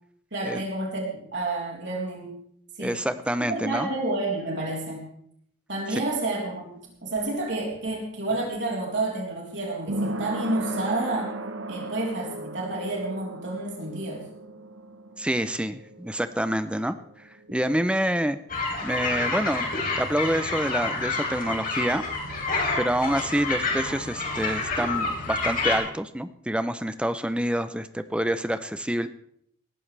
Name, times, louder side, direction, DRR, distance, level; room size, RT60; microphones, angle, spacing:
voice 1, 0.3-2.4 2.8-3.0 3.4-5.0 5.7-6.7 7.0-11.3 11.7-14.3, right 2 dB, 65° right, -2 dB, 3.7 m, -30 dB
voice 2, 2.8-3.9 15.2-16.9 17.5-18.4 18.8-19.7 20.0-22.0 22.8-29.1, right 1 dB, 5° right, 12 dB, 0.6 m, -27 dB
sound 1, 6.8-18.3 18.6-18.7, right 1 dB, 85° right, 1.2 m, -37 dB
sound 2, 18.5-25.8, left 3 dB, 45° left, 3.7 m, -28 dB
18.0 x 14.0 x 3.4 m, 0.69 s
head